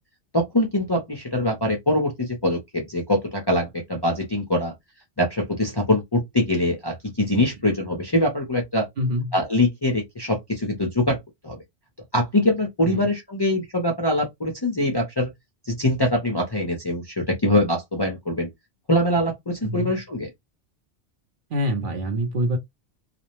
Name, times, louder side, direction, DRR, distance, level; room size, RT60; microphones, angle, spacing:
voice 1, 0.3-4.7 5.2-8.9 9.3-11.6 12.1-15.3 15.7-18.5 18.9-20.3, left 1 dB, 30° left, 0.5 m, -23 dB
voice 2, 9.0-9.4 12.9-13.1 19.6-19.9 21.5-22.6, equal, 55° right, 0.7 m, -25 dB
2.4 x 2.0 x 2.9 m
omnidirectional pair, 1.2 m